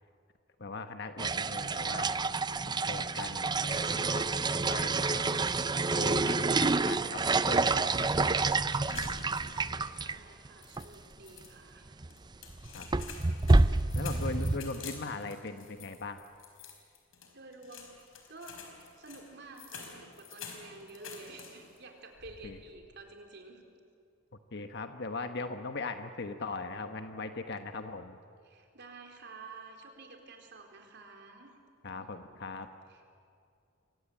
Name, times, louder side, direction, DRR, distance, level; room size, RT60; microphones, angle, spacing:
voice 1, 0.6-2.2 2.7-5.3 5.9-8.6 12.7-12.9 13.9-16.2 22.4-22.6 24.5-28.2 31.8-32.7, left 3 dB, 60° left, 7 dB, 1.2 m, -40 dB
sound 1, 1.2-10.2 10.5-10.6 10.8-10.9 11.9-12.1 12.5-14.6, right 3 dB, 20° right, 0.6 m, -28 dB
sound 2, 8.9-9.8 10.1-10.2 10.6-11.5 12.1-21.8 22.1-22.7, left 5 dB, 85° left, 4.8 m, -48 dB
voice 2, 9.4-11.9 17.3-18.0 18.3-18.6 19.0-23.6 28.4-31.6 32.9-33.1, right 3 dB, 60° right, 3 dB, 4.2 m, -50 dB
28.5 x 24.0 x 8.6 m, 2.4 s
head